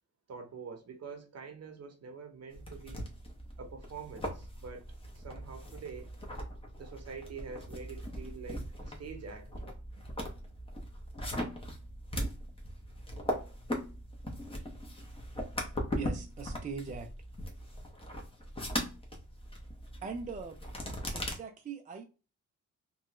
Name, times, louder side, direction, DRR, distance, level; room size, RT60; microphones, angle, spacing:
voice 1, 0.3-3.1 3.6-6.1 6.8-9.5, right 5 dB, 55° right, 0.8 m, -46 dB
sound 1, 2.5-21.3, equal, 15° left, 0.8 m, -39 dB
voice 2, 16.0-17.1 20.0-20.6 21.1-22.0, right 5 dB, 25° right, 0.4 m, -41 dB
2.9 x 2.3 x 2.9 m
cardioid pair, 95°, 31 cm